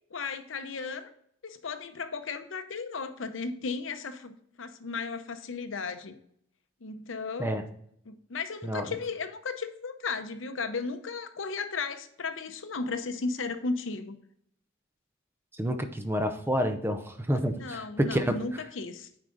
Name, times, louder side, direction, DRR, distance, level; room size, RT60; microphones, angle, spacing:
voice 1, 0.1-1.1 1.4-6.2 6.8-7.5 8.1-14.2 17.5-19.1, left 4 dB, 75° left, 9 dB, 0.8 m, -35 dB
voice 2, 7.4-7.7 8.6-9.0 15.5-18.4, equal, 10° right, 8 dB, 0.6 m, -29 dB
8.5 x 4.9 x 3.9 m, 0.68 s
head